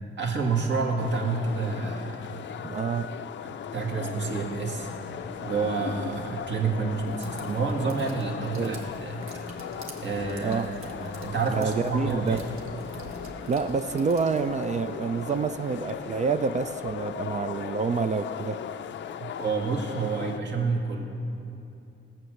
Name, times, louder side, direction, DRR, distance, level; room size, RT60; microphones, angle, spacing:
voice 1, 0.2-2.6 3.4-4.9 5.4-9.2 10.0-10.6 11.0-12.4 19.4-21.0, right 4 dB, 60° right, 1 dB, 1.9 m, -29 dB
sound 1, 1.0-20.4, left 9 dB, 60° left, 0.5 m, -38 dB
voice 2, 2.6-3.1 8.6-8.8 10.4-10.7 11.5-12.4 13.5-18.6 19.2-19.3, right 5 dB, 35° right, 10 dB, 0.3 m, -28 dB
sound 2, 3.9-16.9, right 1 dB, 75° right, 2.8 m, -47 dB
sound 3, 7.0-14.5, right 3 dB, 90° right, 1.4 m, -48 dB
17.5 x 7.9 x 6.4 m, 2.8 s
cardioid pair, 130°, 21 cm